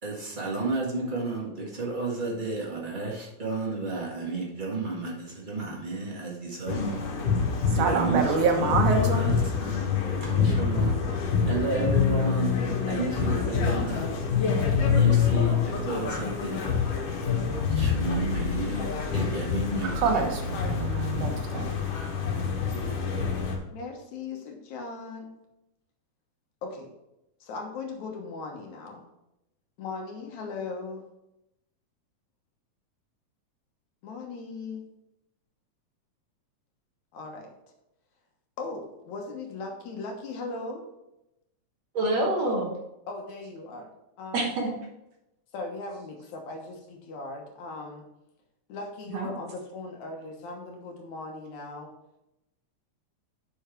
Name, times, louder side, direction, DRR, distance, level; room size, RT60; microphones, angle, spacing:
voice 1, 0.0-7.0 7.7-11.0 11.5-12.6 12.9-14.1 14.9-16.6 17.7-20.3, right 3 dB, 25° right, -3 dB, 1.2 m, -32 dB
sound 1, 6.7-23.6, left 6 dB, 85° left, 3.0 m, -26 dB
voice 2, 7.7-9.3 19.8-21.7, right 5 dB, 80° right, 3 dB, 2.7 m, -26 dB
voice 3, 23.7-25.3 26.6-26.9 27.4-29.0 29.8-31.0 34.0-34.8 37.1-37.5 38.6-40.8 43.1-43.9 44.2-44.6 45.5-48.0 48.7-51.9, left 3 dB, 70° left, 2 dB, 2.5 m, -38 dB
voice 4, 41.9-42.7 44.3-44.7 49.1-49.3, right 2 dB, 60° right, 0 dB, 2.3 m, -26 dB
7.1 x 6.3 x 4.5 m, 0.89 s
omnidirectional pair, 3.5 m